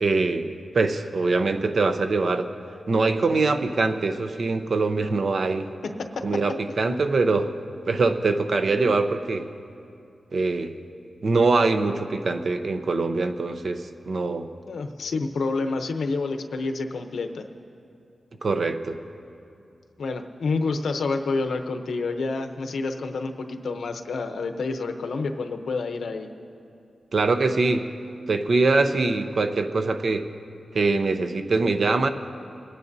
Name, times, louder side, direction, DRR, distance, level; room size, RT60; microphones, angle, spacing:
voice 1, 0.0-2.5 2.9-5.7 6.2-7.5 7.9-9.5 10.3-10.7 11.2-14.5 18.4-19.0 27.1-27.9 28.3-30.3 30.7-32.1, right 3 dB, 60° right, 8 dB, 0.6 m, -23 dB
voice 2, 14.7-17.4 20.0-26.3, left 3 dB, 85° left, 6 dB, 0.7 m, -28 dB
28.5 x 9.8 x 2.7 m, 2.6 s
wide cardioid pair, 95°, 0 cm